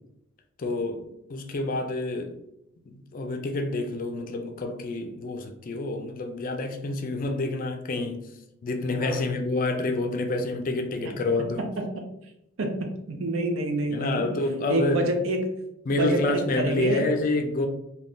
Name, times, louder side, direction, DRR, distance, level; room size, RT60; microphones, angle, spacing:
voice 1, 0.6-2.4 2.9-8.2 8.6-11.6 13.9-15.2 15.9-17.7, left 2 dB, 40° left, 0.4 m, -28 dB
voice 2, 11.4-12.0 12.6-14.3 14.7-15.5 15.9-17.1, right 1 dB, 70° right, 0.6 m, -28 dB
2.5 x 2.3 x 3.4 m
head